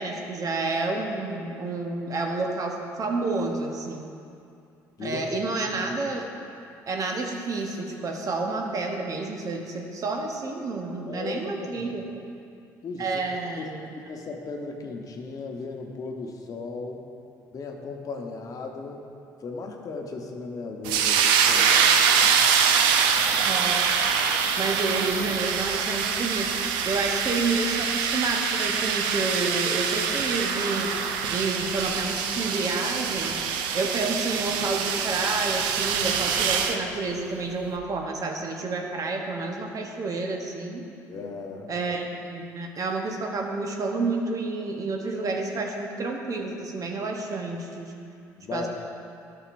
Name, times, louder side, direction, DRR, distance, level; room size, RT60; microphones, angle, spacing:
voice 1, 0.0-4.1 5.0-6.2 6.9-12.1 13.0-13.9 23.2-23.9 24.6-30.9 31.3-33.3 33.7-40.9 41.7-47.9 48.5-48.7, right 3 dB, 45° right, 2 dB, 0.9 m, -29 dB
voice 2, 11.1-11.9 12.8-13.2 13.6-17.0 17.5-19.1 19.4-22.5 41.1-41.7 48.4-48.7, left 4 dB, 45° left, 2 dB, 0.9 m, -36 dB
sound 1, 20.8-36.8, right 6 dB, 80° right, 0.5 m, -24 dB
11.0 x 5.8 x 2.5 m, 2.5 s
hypercardioid pair, 65°, 8 cm